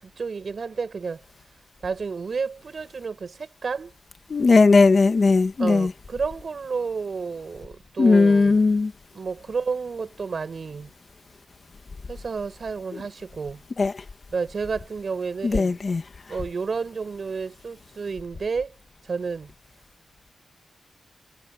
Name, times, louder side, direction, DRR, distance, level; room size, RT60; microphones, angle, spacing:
voice 1, 0.0-1.2 1.8-3.9 5.6-8.6 9.1-10.9 12.1-13.6 14.3-15.8 16.3-18.7 19.0-19.5, right 5 dB, 45° right, 7.4 m, -31 dB
voice 2, 4.3-5.9 8.0-8.9 12.9-13.0 13.8-14.0 15.4-16.0, left 4 dB, 40° left, 1.5 m, -18 dB
wide cardioid pair, 175°, 0 cm